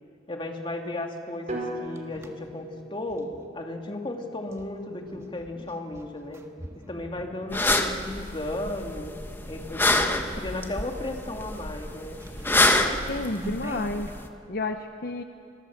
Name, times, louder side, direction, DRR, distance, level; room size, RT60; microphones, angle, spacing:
voice 1, 0.3-6.4 6.9-9.1 9.5-12.2, left 1 dB, 30° left, 2 dB, 2.5 m, -35 dB
sound 1, 1.5-3.5 4.4-8.7 9.2-9.4 9.8-10.4 10.8-10.9 11.2-14.1, equal, 15° right, 1.7 m, -45 dB
sound 2, 1.5-5.5, right 1 dB, 40° right, 4.4 m, -40 dB
sound 3, 7.5-14.3, left 2 dB, 10° left, 1.2 m, -26 dB
voice 2, 13.1-14.1 14.5-15.2, left 2 dB, 60° left, 7 dB, 0.9 m, -30 dB
26.5 x 22.5 x 7.3 m, 2.4 s
head